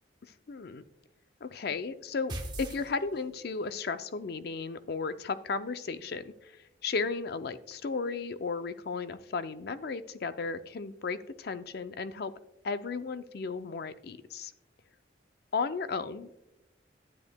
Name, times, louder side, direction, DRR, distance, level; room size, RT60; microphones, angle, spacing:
voice 1, 0.5-0.8 1.4-6.6 6.8-12.3 12.6-14.5 15.5-16.4, left 4 dB, 55° left, 12 dB, 0.4 m, -34 dB
sound 1, 2.3-3.6, right 1 dB, 25° right, 0.9 m, -39 dB
12.5 x 8.4 x 2.2 m, 0.92 s
head